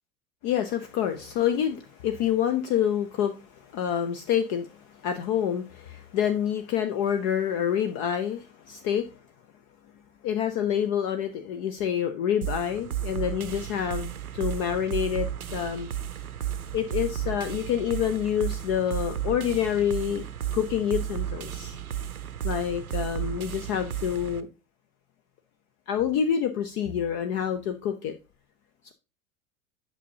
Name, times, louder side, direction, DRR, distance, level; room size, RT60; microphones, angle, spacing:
voice 1, 0.4-9.1 10.2-15.9 16.7-20.3 20.5-21.7 22.4-24.5 25.9-28.2, left 9 dB, 45° left, 8 dB, 0.7 m, -27 dB
sound 1, 12.4-24.4, right 10 dB, 90° right, 0.6 m, -33 dB
8.3 x 5.5 x 2.8 m, 0.30 s
figure-of-eight pair, 80°, 42 cm